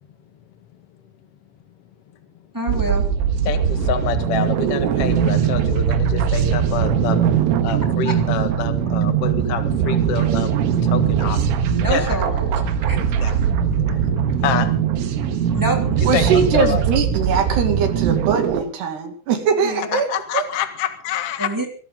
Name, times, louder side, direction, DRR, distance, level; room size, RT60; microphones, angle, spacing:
voice 1, 2.5-3.0 8.0-8.1 11.7-12.5 12.9-13.2 15.5-16.0 19.6-20.0 21.4-21.7, right 1 dB, 5° right, 2 dB, 1.8 m, -26 dB
sound 1, 2.7-18.6, right 8 dB, 80° right, 4.1 m, -20 dB
voice 2, 3.4-7.2 7.6-10.5 10.8-12.2 12.8-15.5 16.1-16.8 19.9-21.5, left 9 dB, 85° left, 8 dB, 1.3 m, -27 dB
voice 3, 16.0-20.1 20.3-20.4, right 6 dB, 60° right, 6 dB, 4.1 m, -21 dB
24.5 x 14.0 x 3.9 m, 0.41 s
omnidirectional pair, 5.8 m